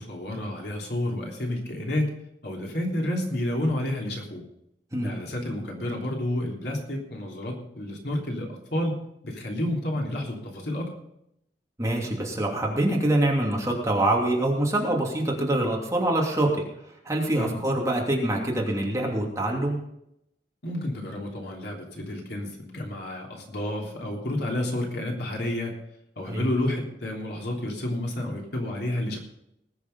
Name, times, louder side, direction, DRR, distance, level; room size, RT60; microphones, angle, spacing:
voice 1, 0.0-2.1 2.4-4.4 5.0-9.0 9.2-10.9 17.3-17.6 20.6-25.7 26.2-29.2, left 1 dB, 65° left, 0 dB, 3.4 m, -30 dB
voice 2, 11.8-16.6 17.0-19.8 26.2-26.5, right 1 dB, 20° right, -1 dB, 2.8 m, -25 dB
20.0 x 7.1 x 5.5 m, 0.78 s
head